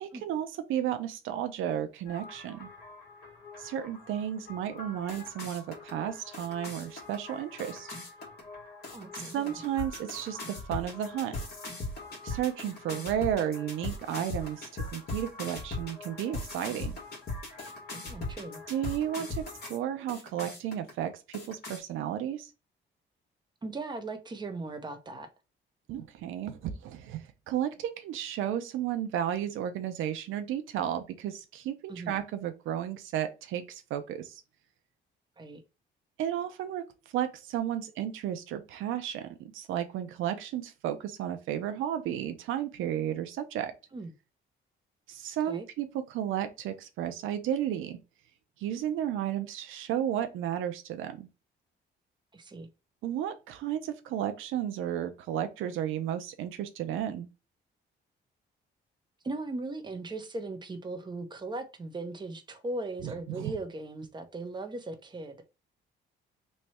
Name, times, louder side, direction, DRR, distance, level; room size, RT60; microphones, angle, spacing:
voice 1, 0.0-2.7 3.6-7.9 9.3-11.3 12.2-17.0 18.7-19.4 19.7-22.5 25.9-34.4 36.2-36.8 37.1-43.7 45.1-48.0 48.6-51.3 53.0-57.3 63.0-63.5, right 10 dB, 85° right, 0.5 m, -33 dB
sound 1, 2.1-19.8 20.1-20.9 21.3-21.8, left 2 dB, 55° left, 1.4 m, -41 dB
voice 2, 8.9-9.6 17.9-18.6 23.6-25.3 31.9-32.2 35.4-35.6 43.9-44.1 45.5-45.7 52.3-52.7 59.2-65.4, right 2 dB, 20° right, 0.7 m, -38 dB
3.1 x 2.2 x 4.1 m
cardioid pair, 90°, 20 cm